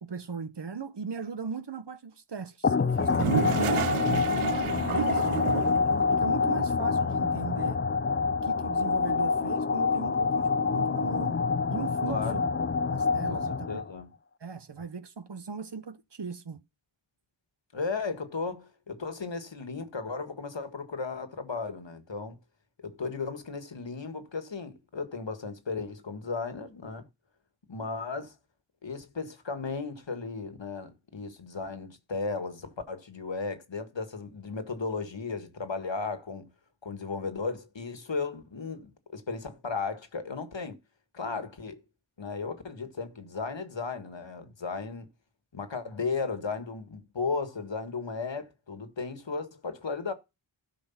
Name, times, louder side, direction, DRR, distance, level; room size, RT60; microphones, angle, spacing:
voice 1, 0.0-5.4 6.1-7.8 8.3-11.4 11.7-12.5 12.9-13.7 14.4-16.6, right 5 dB, 55° right, 1.0 m, -38 dB
sound 1, 2.6-14.0, left 4 dB, 25° left, 0.5 m, -27 dB
Toilet flush, 2.9-6.0, right 9 dB, 90° right, 0.6 m, -31 dB
voice 2, 12.1-12.4 13.3-14.1 17.7-22.4 22.8-27.1 27.7-28.3 28.8-36.5 36.8-40.8 41.1-41.8 42.2-45.1 45.5-50.1, left 4 dB, 60° left, 1.7 m, -35 dB
12.5 x 5.0 x 5.7 m
wide cardioid pair, 40°, 49 cm